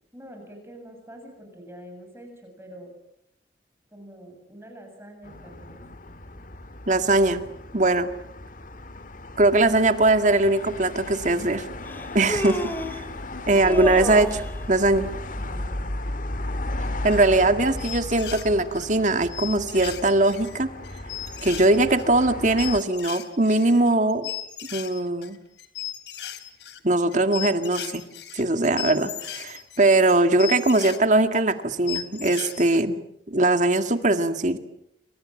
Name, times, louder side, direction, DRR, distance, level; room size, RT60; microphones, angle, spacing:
voice 1, 0.1-2.9 3.9-5.8 15.4-15.8, equal, 15° right, 3 dB, 7.5 m, -45 dB
sound 1, 5.2-22.8, left 1 dB, 50° left, 1.8 m, -35 dB
voice 2, 6.9-7.4 7.7-8.1 9.4-11.6 12.1-12.6 12.9-13.0 13.5-15.1 17.0-20.7 21.4-24.3 24.7-25.4 26.8-28.0 28.3-33.0 33.3-34.6, right 2 dB, 45° right, 8 dB, 2.0 m, -21 dB
Human voice, 10.5-10.6 11.8-13.0 13.5-14.5, equal, 10° left, 2.6 m, -30 dB
sound 2, 16.8-17.5 17.8-18.9 19.3-31.0 31.5-31.6 31.9-32.8, left 11 dB, 85° left, 3.1 m, -36 dB
28.5 x 26.0 x 7.4 m, 0.76 s
head